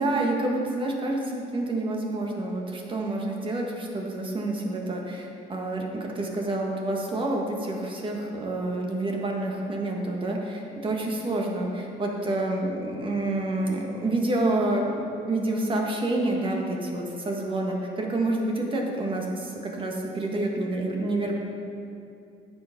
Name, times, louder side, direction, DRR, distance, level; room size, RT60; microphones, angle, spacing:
voice 1, 0.0-21.4, right 2 dB, 30° right, 0 dB, 1.6 m, -28 dB
10.5 x 7.5 x 5.2 m, 2.6 s
cardioid pair, 110°, 17 cm